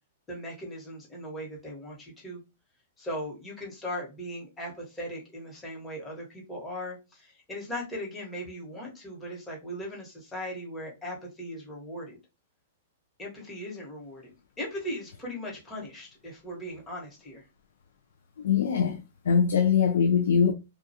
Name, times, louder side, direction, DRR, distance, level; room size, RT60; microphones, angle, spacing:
voice 1, 0.3-2.4 3.0-12.2 13.2-17.4, equal, 15° left, 1.0 m, -38 dB
voice 2, 18.4-20.5, left 7 dB, 80° left, 0.3 m, -23 dB
2.4 x 2.2 x 2.7 m
hypercardioid pair, 135°, 0 cm